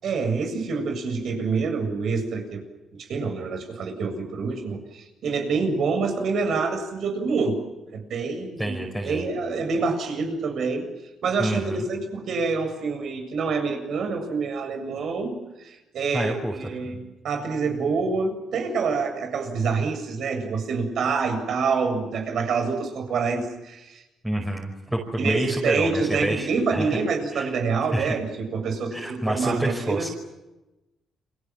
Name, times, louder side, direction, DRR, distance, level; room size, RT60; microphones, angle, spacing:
voice 1, 0.0-2.6 2.9-8.8 9.0-10.9 11.2-17.0 17.2-24.0 25.2-30.1, right 4 dB, 65° right, 6 dB, 7.4 m, -27 dB
voice 2, 8.6-9.3 11.4-11.8 16.1-16.6 16.8-17.0 24.2-27.0 27.3-27.5 27.9-28.1 28.9-30.1, right 1 dB, 10° right, 0 dB, 5.4 m, -28 dB
30.0 x 24.5 x 7.5 m, 1.0 s
cardioid pair, 90°, 0 cm